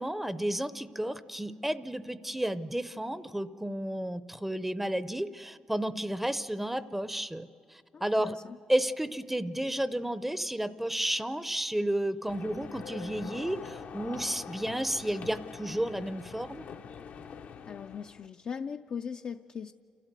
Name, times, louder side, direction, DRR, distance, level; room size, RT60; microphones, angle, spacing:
voice 1, 0.0-8.4 8.7-16.6, right 1 dB, 5° right, 14 dB, 0.6 m, -32 dB
voice 2, 7.9-8.6 17.7-19.7, left 6 dB, 55° left, 6 dB, 0.4 m, -39 dB
sound 1, 12.3-18.3, left 7 dB, 75° left, 0.9 m, -44 dB
29.0 x 13.0 x 8.1 m, 2.5 s
cardioid pair, 85°, 3 cm